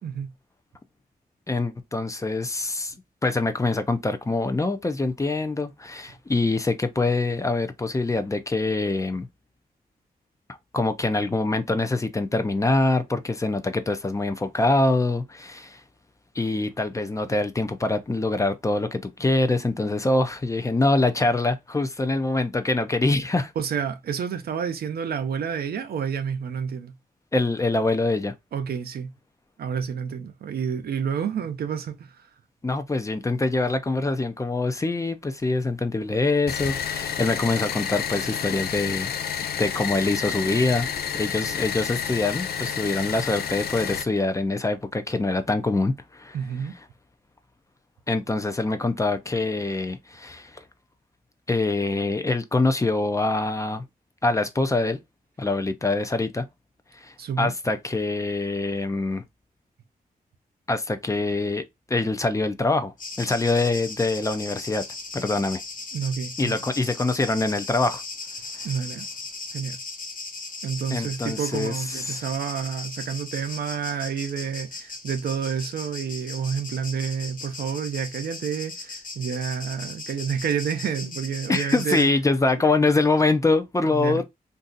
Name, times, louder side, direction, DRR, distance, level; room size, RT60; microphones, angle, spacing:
voice 1, 1.5-2.9 3.2-9.3 10.7-15.8 16.3-23.5 27.3-28.3 32.6-39.1 39.6-40.9 41.1-46.4 48.1-50.6 51.5-53.8 54.2-55.0 55.4-56.4 56.9-59.2 60.7-64.8 65.1-65.6 66.4-68.0 68.5-68.7 70.9-72.3 81.5-84.2, left 2 dB, 20° left, 0.4 m, -24 dB
voice 2, 23.6-26.9 28.5-29.1 29.6-32.2 46.3-46.7 57.2-57.5 65.9-66.6 68.6-69.1 69.5-69.8 70.6-82.1 83.9-84.2, right 7 dB, 85° right, 0.6 m, -29 dB
sound 1, 36.5-44.0, left 8 dB, 85° left, 0.5 m, -30 dB
sound 2, 63.0-82.1, left 3 dB, 60° left, 1.1 m, -38 dB
2.6 x 2.4 x 3.8 m
wide cardioid pair, 100°, 16 cm